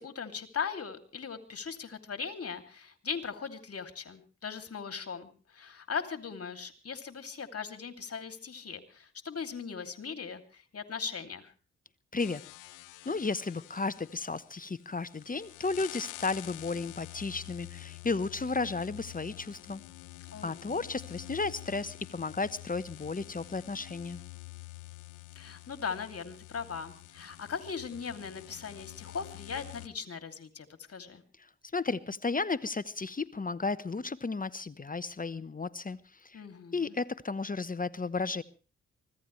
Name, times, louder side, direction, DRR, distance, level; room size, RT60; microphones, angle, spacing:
voice 1, 0.0-11.5 20.3-20.8 25.4-31.2 36.3-36.9, left 6 dB, 50° left, 7 dB, 2.8 m, -39 dB
sound 1, 12.2-29.9, left 19 dB, 85° left, 0.7 m, -48 dB
voice 2, 13.0-19.8 20.4-24.2 31.4-31.5 31.7-36.4 36.7-38.4, left 3 dB, 25° left, 15 dB, 1.1 m, -33 dB
24.5 x 16.5 x 3.3 m, 0.36 s
hypercardioid pair, 40°, 30 cm